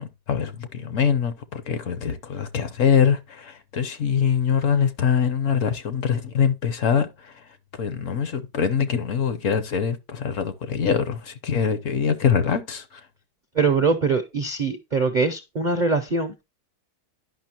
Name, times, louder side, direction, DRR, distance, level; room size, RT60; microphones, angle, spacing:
voice 1, 0.0-13.1, left 7 dB, 60° left, 1.0 m, -24 dB
voice 2, 13.5-16.4, right 4 dB, 50° right, 0.5 m, -23 dB
10.5 x 5.7 x 2.9 m
omnidirectional pair, 1.7 m